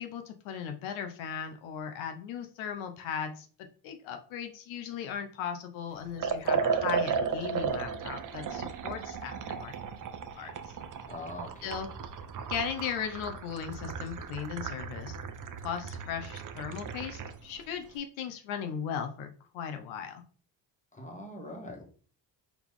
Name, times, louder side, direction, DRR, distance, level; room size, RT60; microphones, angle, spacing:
voice 1, 0.0-3.5 3.8-9.7 10.4-10.8 11.6-11.9 12.5-15.1 15.6-20.2, left 7 dB, 80° left, 6 dB, 0.7 m, -37 dB
Liquid, 6.2-17.4, right 6 dB, 40° right, 0.7 m, -35 dB
voice 2, 11.1-11.7 20.9-21.8, left 1 dB, 15° left, 2 dB, 1.5 m, -42 dB
4.0 x 2.8 x 3.6 m, 0.41 s
supercardioid pair, 65°, 47 cm